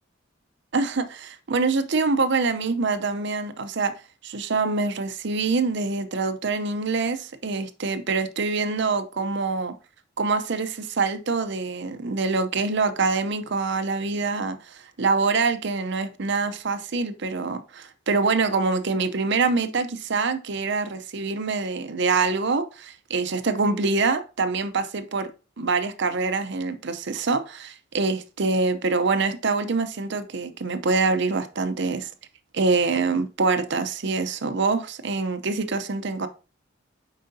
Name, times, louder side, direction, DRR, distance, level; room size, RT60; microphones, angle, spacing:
voice 1, 0.7-9.7 10.2-25.3 25.6-32.1 32.5-36.3, right 4 dB, 65° right, 0.7 m, -25 dB
7.5 x 4.9 x 2.7 m
head